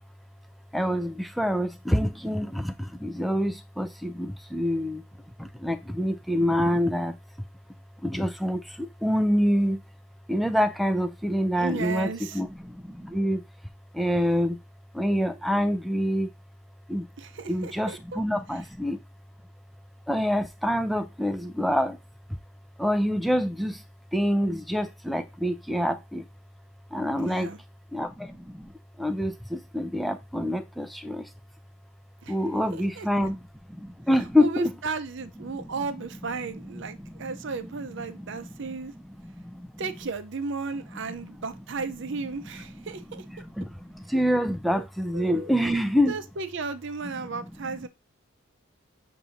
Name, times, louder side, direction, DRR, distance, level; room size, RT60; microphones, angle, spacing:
voice 1, 0.7-2.5 3.0-3.5 3.8-5.0 5.6-7.1 8.0-8.6 9.0-9.8 10.3-12.1 12.3-12.5 13.1-13.4 14.0-14.5 15.0-16.3 16.9-17.0 17.5-19.0 20.1-21.9 22.8-23.7 24.1-26.2 26.9-27.5 27.9-28.1 29.0-29.3 29.7-31.2 32.3-33.4 34.1-34.7 43.6-43.7 44.1-46.2, equal, ahead, 0.3 m, -25 dB
voice 2, 11.6-12.4 17.2-18.2 27.2-27.6 32.2-32.4 32.7-33.1 34.4-38.9 39.8-43.2 44.7-44.8 45.1-45.5 46.1-47.9, right 4 dB, 55° right, 0.5 m, -34 dB
7.0 x 2.7 x 2.6 m
head